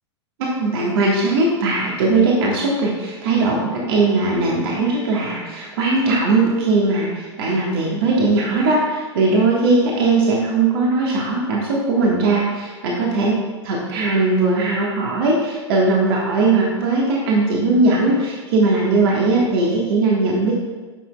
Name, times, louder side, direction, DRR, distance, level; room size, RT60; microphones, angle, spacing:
voice 1, 0.4-13.4 13.6-20.5, right 3 dB, 55° right, -3 dB, 1.4 m, -19 dB
9.7 x 5.9 x 2.2 m, 1.3 s
figure-of-eight pair, 95°, 15 cm